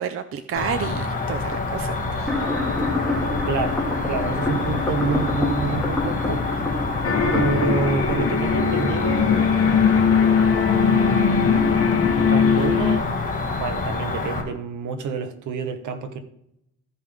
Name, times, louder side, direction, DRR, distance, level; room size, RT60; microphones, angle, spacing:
voice 1, 0.0-2.3, right 7 dB, 45° right, 0.5 m, -30 dB
Cricket, 0.6-14.4, left 3 dB, 25° left, 1.7 m, -27 dB
sound 1, 2.3-9.3, left 2 dB, 5° left, 1.9 m, -28 dB
voice 2, 3.5-3.8 4.1-6.5 7.3-9.5 10.8-11.5 12.3-13.1 13.6-16.2, right 4 dB, 70° right, 1.1 m, -28 dB
sound 2, 7.0-13.0, left 6 dB, 45° left, 1.1 m, -20 dB
14.5 x 5.4 x 3.5 m
cardioid pair, 135°, 31 cm